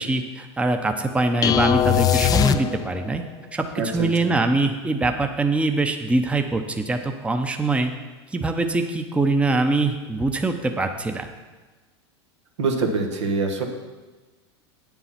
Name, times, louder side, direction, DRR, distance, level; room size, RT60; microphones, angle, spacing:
voice 1, 0.0-3.2 3.5-7.9 8.3-11.3, right 2 dB, 10° right, 6 dB, 0.7 m, -23 dB
sound 1, 1.4-3.2, left 9 dB, 25° left, 0.4 m, -20 dB
voice 2, 3.8-4.4 12.6-13.6, right 3 dB, 80° right, 4 dB, 1.4 m, -25 dB
8.6 x 7.1 x 5.8 m, 1.3 s
hypercardioid pair, 105°, 15 cm